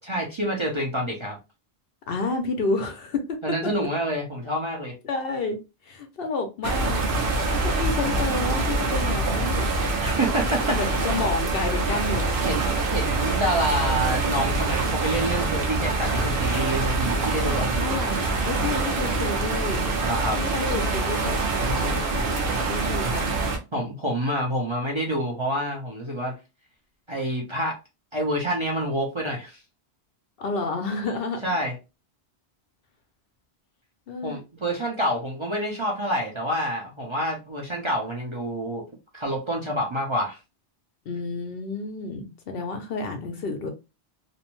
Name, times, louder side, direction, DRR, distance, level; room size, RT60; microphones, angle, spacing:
voice 1, 0.0-1.4 3.4-4.9 10.0-10.8 12.5-12.6 12.9-17.7 20.0-20.4 21.5-22.0 23.7-26.3 27.1-27.8 28.1-29.6 31.4-31.7 34.2-38.9 39.1-40.4, equal, 35° right, 0.6 m, -27 dB
voice 2, 2.1-3.4 5.0-5.6 5.9-7.1 7.6-9.8 10.7-12.4 17.8-19.8 20.3-21.9 22.7-23.5 30.4-31.4 34.1-34.4 41.1-43.7, left 3 dB, 65° left, 0.8 m, -30 dB
sound 1, 6.6-23.6, right 3 dB, 60° right, 0.9 m, -25 dB
2.6 x 2.1 x 2.9 m
omnidirectional pair, 1.1 m